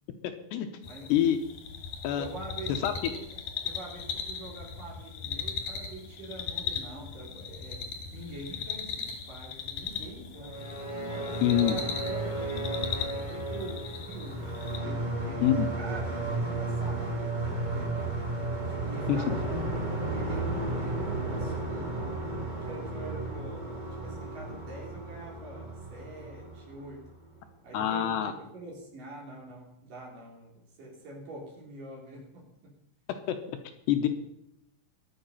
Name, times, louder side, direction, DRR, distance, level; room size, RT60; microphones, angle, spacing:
sound 1, 0.8-14.8, left 6 dB, 55° left, 2.9 m, -38 dB
voice 1, 2.2-3.2 3.6-7.8 8.1-10.6 11.1-14.4 14.8-15.5 15.8-18.1 18.7-19.7 20.1-22.2 22.7-27.0 27.6-32.7, right 2 dB, 50° right, -2 dB, 5.2 m, -44 dB
sound 2, 10.4-27.3, right 2 dB, 35° right, 0.7 m, -33 dB
voice 2, 11.4-11.8 15.4-15.7 19.1-19.2 27.7-28.3 33.1-33.4 33.9-34.1, left 11 dB, 75° left, 7 dB, 3.0 m, -25 dB
22.5 x 7.8 x 5.6 m, 0.76 s
omnidirectional pair, 5.2 m